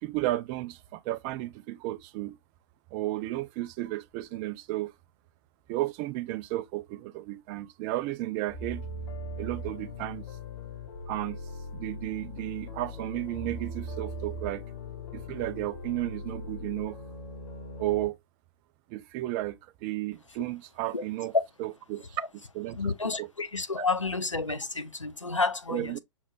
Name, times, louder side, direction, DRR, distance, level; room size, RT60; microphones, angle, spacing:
voice 1, 0.0-2.4 2.9-4.9 5.7-8.8 9.4-10.2 11.1-11.4 11.7-14.6 15.1-17.0 17.8-18.2 18.9-21.3 21.6-22.9 23.2-23.3 25.7-26.0, right 16 dB, 25° right, 0.4 m, -33 dB
sound 1, 8.5-18.1, left 1 dB, 50° left, 2.0 m, -40 dB
voice 2, 22.7-26.0, left 3 dB, 85° left, 0.8 m, -30 dB
6.1 x 2.9 x 2.4 m
figure-of-eight pair, 110°, 16 cm